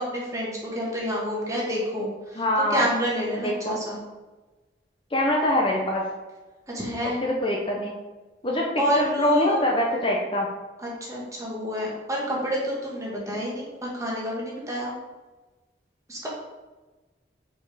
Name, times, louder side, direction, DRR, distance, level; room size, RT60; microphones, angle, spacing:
voice 1, 0.0-2.4 2.7-4.0 6.7-7.2 8.8-9.6 10.8-14.9 16.1-16.3, equal, 15° right, -4 dB, 1.4 m, -28 dB
voice 2, 2.4-2.8 3.4-3.8 5.1-6.1 7.0-7.9 8.4-8.7 9.0-10.5, left 1 dB, 25° left, -1 dB, 0.7 m, -24 dB
5.2 x 4.4 x 4.9 m, 1.2 s
head